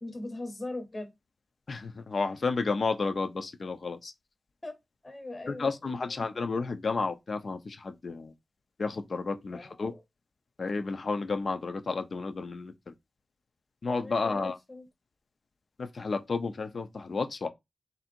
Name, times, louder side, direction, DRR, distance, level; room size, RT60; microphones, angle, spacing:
voice 1, 0.0-1.2 4.6-4.7 5.0-6.3 9.5-10.0 14.0-14.8, left 2 dB, 30° left, 0.9 m, -40 dB
voice 2, 1.7-4.1 5.5-8.3 8.8-9.9 10.6-12.9 13.8-14.6 15.8-17.5, left 4 dB, 55° left, 0.6 m, -32 dB
3.5 x 2.7 x 4.3 m
wide cardioid pair, 100°, 0 cm